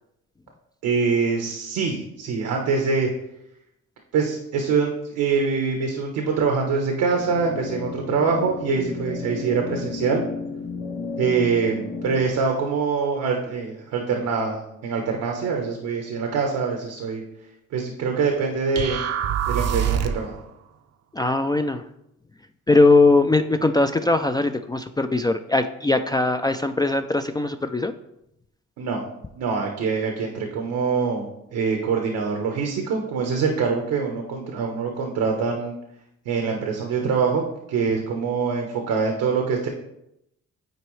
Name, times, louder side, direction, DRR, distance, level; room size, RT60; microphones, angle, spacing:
voice 1, 0.8-3.1 4.1-10.2 11.2-17.2 17.7-19.0 19.5-20.4 28.8-29.0 29.4-35.7 36.2-37.4 37.7-39.7, right 5 dB, 90° right, 2 dB, 1.1 m, -24 dB
sound 1, 7.1-12.3, left 4 dB, 90° left, 0.9 m, -33 dB
sound 2, 18.8-20.3, right 8 dB, 55° right, 0.6 m, -24 dB
voice 2, 21.1-21.8 22.7-27.9, left 2 dB, 15° left, 7 dB, 0.3 m, -20 dB
9.1 x 4.5 x 3.2 m, 0.81 s
cardioid pair, 90°, 30 cm